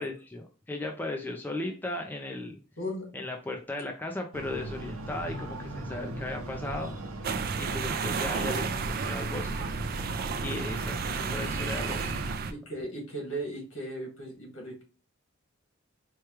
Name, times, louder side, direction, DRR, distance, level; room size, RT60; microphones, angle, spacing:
voice 1, 0.0-2.6 3.1-6.9 7.6-9.7 10.4-12.2, left 2 dB, 10° left, 2 dB, 0.5 m, -36 dB
voice 2, 2.8-3.1 12.5-14.8, right 1 dB, 70° left, 0 dB, 1.7 m, -37 dB
Breathing, 4.3-12.4, right 1 dB, 85° right, 0.7 m, -38 dB
sound 1, 7.2-12.5, right 5 dB, 45° right, 0.4 m, -32 dB
4.5 x 2.3 x 3.0 m, 0.35 s
head